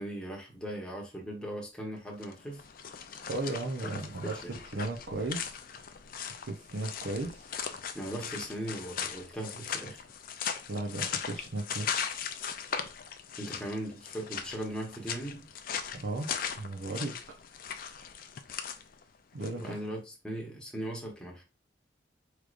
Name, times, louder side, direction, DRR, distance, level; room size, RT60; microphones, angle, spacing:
voice 1, 0.0-2.6 3.8-4.6 7.9-10.0 13.4-15.5 19.6-21.4, right 1 dB, 5° left, 1.0 m, -39 dB
sound 1, 2.1-19.7, left 7 dB, 50° left, 0.4 m, -39 dB
voice 2, 3.3-5.6 6.5-7.5 10.7-12.2 15.9-16.3 16.6-17.2 19.3-19.8, right 2 dB, 70° right, 0.7 m, -36 dB
4.9 x 3.2 x 2.5 m
head